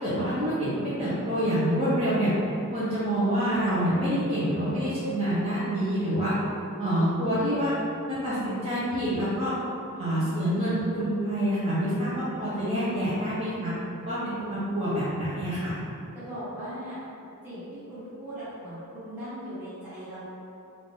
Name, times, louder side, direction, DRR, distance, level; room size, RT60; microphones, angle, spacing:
voice 1, 0.0-2.3 2.7-6.3 6.8-7.7 8.1-9.5 10.0-13.7 14.0-15.8, equal, 25° right, -12 dB, 0.7 m, -27 dB
voice 2, 9.9-10.3 16.1-17.0 17.4-20.2, equal, 10° right, -16 dB, 1.3 m, -39 dB
3.6 x 2.5 x 3.6 m, 2.7 s
head